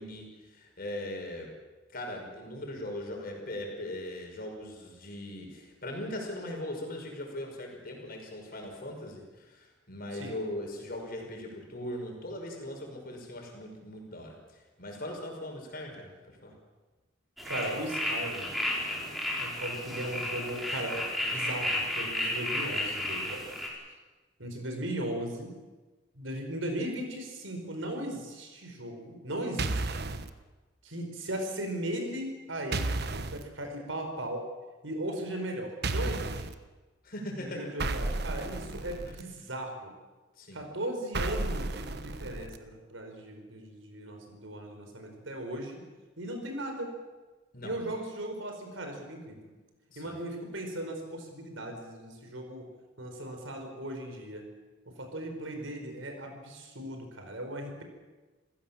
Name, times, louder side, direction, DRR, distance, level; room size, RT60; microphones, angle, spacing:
voice 1, 0.0-1.5 1.9-16.5 37.0-37.7 39.1-39.2 40.4-40.6 47.5-47.8 49.9-50.1, left 1 dB, 50° left, 2 dB, 5.6 m, -40 dB
sound 1, 17.4-23.7, left 1 dB, ahead, 4.9 m, -33 dB
voice 2, 17.5-18.5 19.4-23.5 24.4-25.6 26.1-30.1 30.8-34.5 34.8-36.5 37.3-39.9 40.5-45.9 46.2-46.9 47.6-49.5 50.0-52.7 53.0-54.5 55.0-57.8, right 1 dB, 75° right, 4 dB, 5.0 m, -37 dB
sound 2, 29.6-30.3 32.7-33.4 35.8-36.5 37.8-39.2 41.1-42.6, right 2 dB, 55° right, 1.2 m, -32 dB
28.5 x 16.0 x 7.3 m, 1.3 s
head